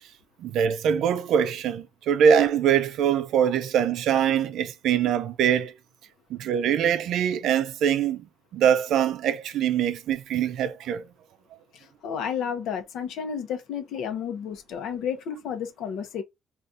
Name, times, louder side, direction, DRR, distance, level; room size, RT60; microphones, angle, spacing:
voice 1, 0.4-5.7 6.3-8.2 8.5-11.0, right 8 dB, 80° right, 0.4 m, -23 dB
voice 2, 11.7-16.2, left 7 dB, 85° left, 0.7 m, -32 dB
2.6 x 2.4 x 3.6 m
cardioid pair, 90°, 0 cm